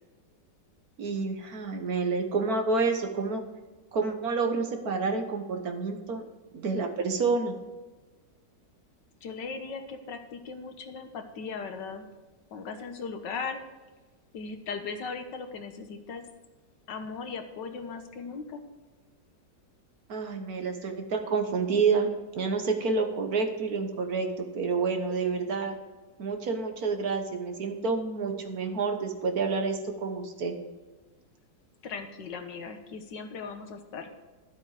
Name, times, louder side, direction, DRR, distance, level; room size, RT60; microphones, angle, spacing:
voice 1, 1.0-3.4 3.9-6.2 6.5-7.6 20.1-25.8 26.2-30.5, right 4 dB, 55° right, 5 dB, 1.6 m, -29 dB
voice 2, 9.2-12.1 12.5-13.6 14.3-16.3 16.9-18.6 31.8-34.1, left 5 dB, 75° left, 7 dB, 1.8 m, -38 dB
12.5 x 7.9 x 4.9 m, 1.2 s
omnidirectional pair, 2.0 m